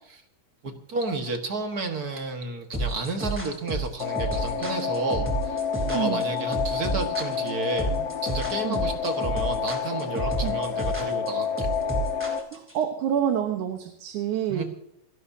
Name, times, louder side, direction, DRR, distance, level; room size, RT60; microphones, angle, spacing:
voice 1, 0.6-11.7 14.5-14.6, right 3 dB, 40° right, 5 dB, 1.7 m, -31 dB
sound 1, 2.7-12.8, right 2 dB, 5° right, 3.5 m, -30 dB
sound 2, 4.0-12.4, left 7 dB, 65° left, 1.7 m, -29 dB
voice 2, 5.9-6.2 8.6-8.8 10.4-10.6 12.5-14.6, right 9 dB, 85° right, 5 dB, 2.7 m, -27 dB
29.0 x 12.0 x 2.8 m, 0.75 s
omnidirectional pair, 3.5 m